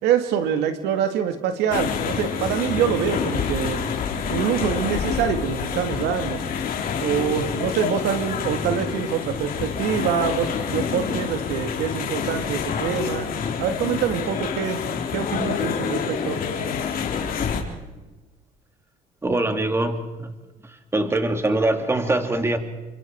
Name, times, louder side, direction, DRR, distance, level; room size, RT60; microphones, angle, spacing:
voice 1, 0.0-3.8 4.3-6.4 7.0-13.3 13.6-14.8 15.1-16.4, right 8 dB, 90° right, 7 dB, 2.2 m, -25 dB
sound 1, 1.7-17.6, left 6 dB, 60° left, 3.8 m, -27 dB
voice 2, 19.2-20.3 20.9-22.6, right 2 dB, 15° right, 6 dB, 2.5 m, -23 dB
29.5 x 24.5 x 4.7 m, 1.1 s
cardioid pair, 110°, 17 cm